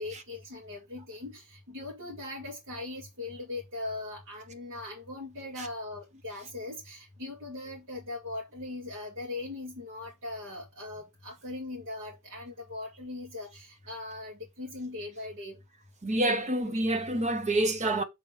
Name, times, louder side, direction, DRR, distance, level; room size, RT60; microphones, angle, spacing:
voice 1, 0.0-15.6, left 2 dB, 60° right, 2.1 m, -40 dB
voice 2, 16.0-18.0, right 1 dB, 35° right, 0.9 m, -27 dB
6.9 x 3.7 x 5.1 m
head